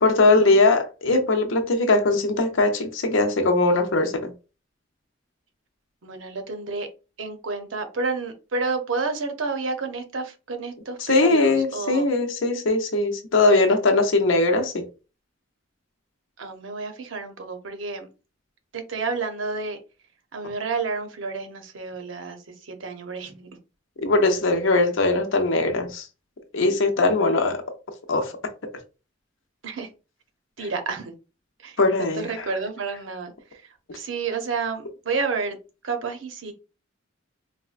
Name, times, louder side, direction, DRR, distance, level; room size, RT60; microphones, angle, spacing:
voice 1, 0.0-4.3 11.1-14.8 24.0-26.1 26.5-27.6 28.1-28.3 31.8-32.3, left 2 dB, 90° left, 0.7 m, -20 dB
voice 2, 6.0-6.9 7.2-12.1 16.4-18.1 18.7-19.8 20.3-23.5 27.1-27.4 29.6-29.9 30.6-31.1 31.6-35.6 35.8-36.5, right 4 dB, 85° right, 0.7 m, -30 dB
4.1 x 2.1 x 2.4 m
head